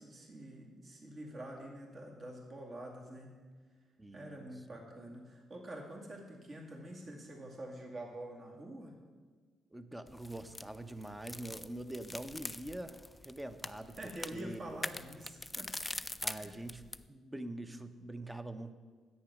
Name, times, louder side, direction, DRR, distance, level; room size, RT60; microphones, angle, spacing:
voice 1, 0.0-3.4 4.1-9.0 14.0-15.7 16.0-16.6, right 1 dB, 45° right, -1 dB, 2.2 m, -47 dB
voice 2, 4.0-4.5 9.7-13.0 13.2-14.0 14.3-14.6 16.2-16.8 17.1-18.7, right 1 dB, 10° right, 10 dB, 0.8 m, -44 dB
sound 1, 10.1-17.1, left 2 dB, 10° left, 0.4 m, -44 dB
10.0 x 8.6 x 6.2 m, 1.5 s
cardioid pair, 90°, 0 cm